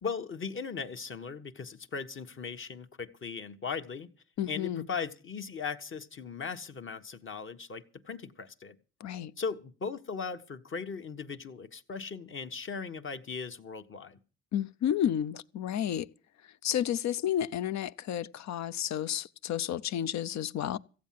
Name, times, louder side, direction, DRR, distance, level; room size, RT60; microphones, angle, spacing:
voice 1, 0.0-4.1 4.5-8.7 9.4-14.2, left 5 dB, 40° left, 1.3 m, -38 dB
voice 2, 4.4-4.9 9.0-9.3 14.5-16.1 16.4-20.8, left 10 dB, 65° left, 0.7 m, -31 dB
15.0 x 8.5 x 7.5 m
cardioid pair, 90°, 30 cm